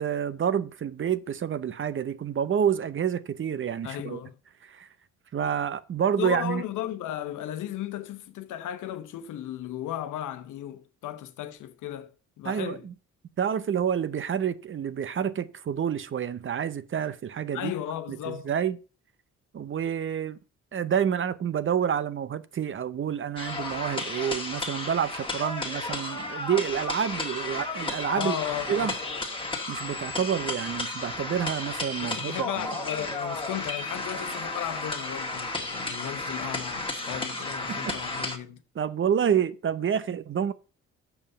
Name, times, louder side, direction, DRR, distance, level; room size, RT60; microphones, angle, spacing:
voice 1, 0.0-4.2 4.6-4.9 5.3-6.6 12.4-12.9 13.4-17.7 18.1-18.8 19.5-20.4 20.7-28.4 28.7-28.9 29.7-32.7 37.7-38.0 38.7-40.5, right 8 dB, 40° right, 0.7 m, -28 dB
voice 2, 3.8-4.4 6.2-12.1 12.4-12.8 17.5-18.5 28.2-29.0 32.0-38.6, left 11 dB, 80° left, 1.0 m, -35 dB
sound 1, 23.4-38.4, left 2 dB, 15° left, 1.9 m, -33 dB
7.1 x 5.4 x 6.6 m
cardioid pair, 90°, 30 cm